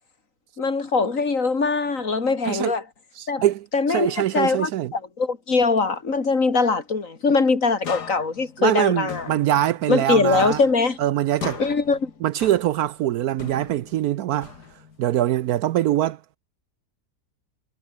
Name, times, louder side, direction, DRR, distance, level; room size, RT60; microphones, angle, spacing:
voice 1, 0.6-2.8 3.3-3.4 3.7-9.3 9.9-11.0 11.6-12.1, left 4 dB, 50° left, 2.8 m, -22 dB
voice 2, 3.2-4.9 8.6-10.6 11.0-11.6 12.2-14.5 15.0-16.2, right 13 dB, 70° right, 1.0 m, -23 dB
sound 1, 7.8-10.1 10.3-13.0 13.4-15.1, left 6 dB, 75° left, 2.4 m, -38 dB
omnidirectional pair, 1.8 m